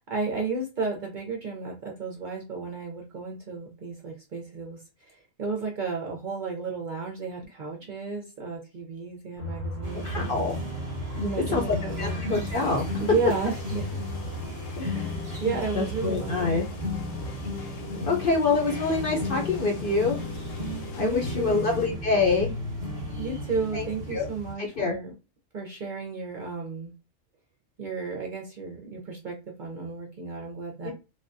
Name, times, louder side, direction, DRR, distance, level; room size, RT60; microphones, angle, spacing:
voice 1, 0.1-10.4 11.1-12.2 13.0-14.0 14.9-16.7 17.9-18.2 20.6-21.7 23.2-25.1 25.5-26.9 27.8-30.9, right 4 dB, 50° right, -1 dB, 0.6 m, -33 dB
sound 1, 9.4-22.3, left 1 dB, 20° left, 0.4 m, -39 dB
sound 2, 9.8-24.5, left 1 dB, 30° right, 1.0 m, -35 dB
voice 2, 10.0-10.5 11.5-11.6 12.0-12.9 14.8-15.0 15.3-15.4 15.7-16.6 18.1-20.2 21.0-22.5 23.7-24.2 24.6-24.9 30.8-30.9, left 3 dB, 55° left, 1 dB, 0.7 m, -26 dB
sound 3, 12.6-21.9, left 7 dB, 85° left, 1.0 m, -45 dB
3.3 x 2.2 x 2.5 m, 0.30 s
omnidirectional pair, 1.3 m